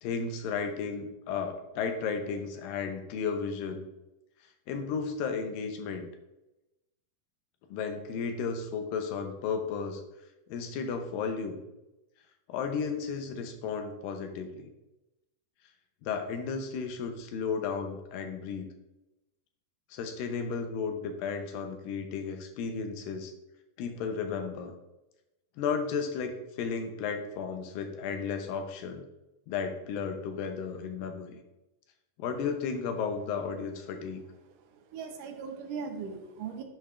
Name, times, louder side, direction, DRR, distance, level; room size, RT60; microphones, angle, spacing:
voice 1, 0.0-3.9 4.7-6.1 7.7-10.0 10.5-11.6 12.5-14.7 16.0-18.7 19.9-23.3 23.8-24.7 25.6-29.0 29.5-31.4 32.2-34.2, left 5 dB, 80° left, 5 dB, 2.5 m, -34 dB
voice 2, 34.6-36.6, right 6 dB, 75° right, 4 dB, 2.2 m, -39 dB
10.5 x 5.2 x 2.5 m, 0.95 s
omnidirectional pair, 4.1 m